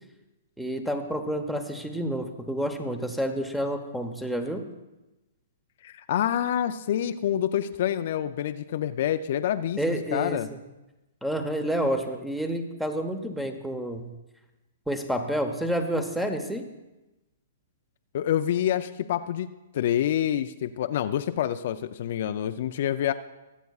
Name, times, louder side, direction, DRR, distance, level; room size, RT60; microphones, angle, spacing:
voice 1, 0.6-4.7 9.8-10.6 11.2-14.1 14.9-16.7, equal, ahead, 7 dB, 1.0 m, -29 dB
voice 2, 5.8-10.5 18.1-19.5 19.7-23.1, left 10 dB, 60° left, 9 dB, 0.4 m, -27 dB
23.5 x 8.1 x 2.4 m, 1.0 s
hypercardioid pair, 135°, 0 cm